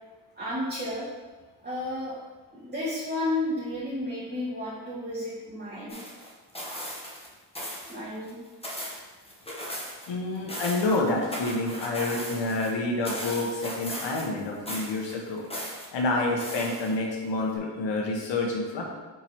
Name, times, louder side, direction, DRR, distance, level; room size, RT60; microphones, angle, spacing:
voice 1, 0.3-1.1 1.6-2.1 2.5-6.0 7.9-8.4, left 1 dB, 25° right, -9 dB, 1.7 m, -32 dB
sound 1, 5.9-7.3 7.6-8.0 8.3-10.1 10.4-12.7 13.1-14.4 14.7-15.9 16.4-17.2 17.6-17.7, equal, 15° left, 1.6 m, -37 dB
voice 2, 10.1-15.5 15.9-18.8, left 2 dB, 85° left, 0 dB, 1.3 m, -28 dB
5.3 x 4.5 x 4.3 m, 1.3 s
cardioid pair, 60°, 42 cm